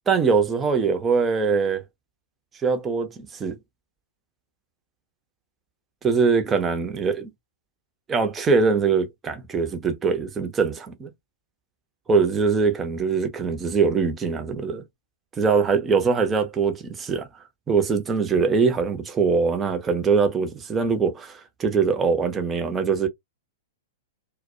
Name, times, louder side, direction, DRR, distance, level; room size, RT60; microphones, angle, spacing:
voice 1, 0.1-1.8 2.6-3.6 6.0-7.3 8.1-11.1 12.1-14.8 15.4-17.3 17.7-23.1, right 5 dB, 15° right, 0.6 m, -22 dB
2.2 x 2.1 x 2.6 m
figure-of-eight pair, 100°, 0 cm